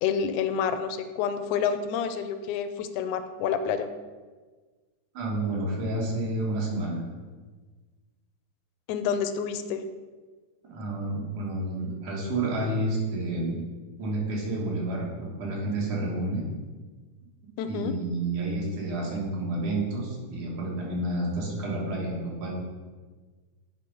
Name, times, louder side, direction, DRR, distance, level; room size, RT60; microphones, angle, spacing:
voice 1, 0.0-3.9 8.9-9.8 17.6-18.0, left 7 dB, 85° left, 10 dB, 1.9 m, -28 dB
voice 2, 5.1-7.0 10.6-13.6 14.0-16.5 17.6-22.5, right 2 dB, 85° right, -3 dB, 3.0 m, -30 dB
9.6 x 3.5 x 5.3 m, 1.4 s
omnidirectional pair, 3.3 m